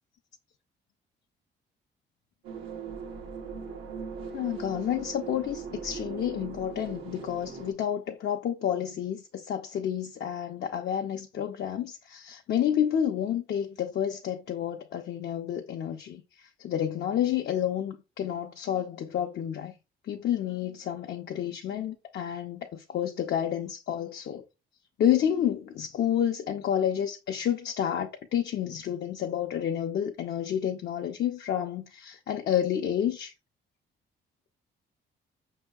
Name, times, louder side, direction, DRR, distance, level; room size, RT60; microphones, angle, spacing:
sound 1, 2.4-7.7, right 6 dB, 85° right, 0.9 m, -39 dB
voice 1, 4.3-19.7 20.1-24.4 25.0-33.3, left 10 dB, 60° left, 0.5 m, -30 dB
5.4 x 2.8 x 2.3 m
cardioid pair, 90°, 20 cm